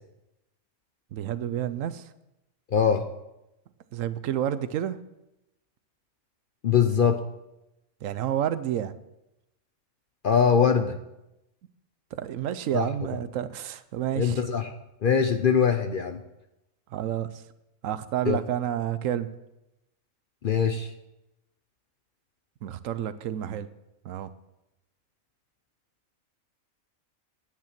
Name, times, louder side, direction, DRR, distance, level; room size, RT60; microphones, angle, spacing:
voice 1, 1.1-2.1 3.9-5.0 8.0-9.0 12.1-14.4 16.9-17.3 17.8-19.3 22.6-23.7 24.0-24.3, right 10 dB, 70° right, 14 dB, 1.0 m, -29 dB
voice 2, 2.7-3.0 6.6-7.2 10.2-11.0 12.7-12.9 14.1-14.7 15.0-16.2 18.3-18.4 20.4-20.9, left 7 dB, 50° left, 7 dB, 0.6 m, -22 dB
9.8 x 9.4 x 5.8 m, 0.91 s
omnidirectional pair, 1.4 m